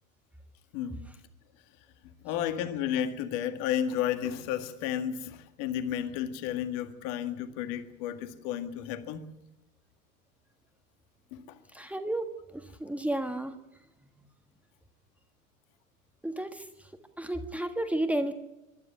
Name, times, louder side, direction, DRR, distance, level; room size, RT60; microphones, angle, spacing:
voice 1, 0.7-1.1 2.2-9.3 11.3-11.6, left 10 dB, 45° left, 1.9 m, -32 dB
voice 2, 11.7-13.5 16.2-16.6 17.2-18.3, right 1 dB, 5° right, 1.5 m, -32 dB
23.5 x 12.0 x 9.9 m
figure-of-eight pair, 90°, 43 cm